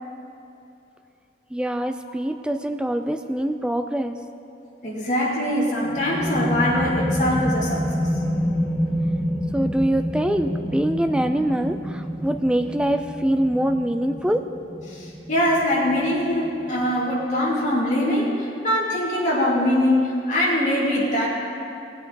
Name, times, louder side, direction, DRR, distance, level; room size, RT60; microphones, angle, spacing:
voice 1, 1.5-4.2 9.5-14.4, right 1 dB, 5° right, 7 dB, 0.4 m, -24 dB
voice 2, 4.8-7.8 14.9-21.3, left 1 dB, 45° left, -6 dB, 2.7 m, -22 dB
sound 1, 5.8-17.2, equal, 25° right, 1.8 m, -28 dB
18.0 x 7.9 x 4.0 m, 2.8 s
head